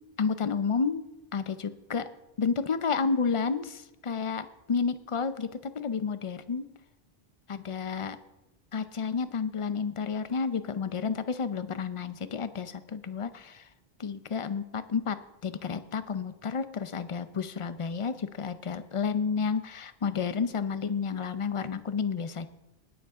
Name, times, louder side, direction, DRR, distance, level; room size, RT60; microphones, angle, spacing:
voice 1, 0.2-1.0 1.3-2.0 2.4-6.7 7.5-8.2 8.7-13.7 14.0-15.2 15.4-22.5, left 5 dB, 40° left, 12 dB, 0.6 m, -31 dB
20.0 x 7.2 x 3.6 m, 0.93 s
omnidirectional pair, 1.0 m